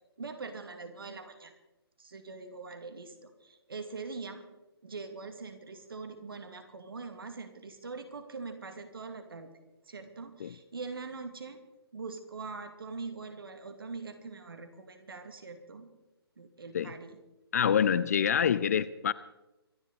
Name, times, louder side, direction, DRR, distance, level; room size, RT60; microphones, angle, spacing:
voice 1, 0.2-1.5 2.0-4.4 4.8-9.5 9.9-11.6 11.9-15.9 16.4-17.2, right 4 dB, 60° right, 2.4 m, -43 dB
voice 2, 17.5-19.1, left 8 dB, 40° left, 0.5 m, -26 dB
25.0 x 10.5 x 4.1 m
figure-of-eight pair, 140°, 13 cm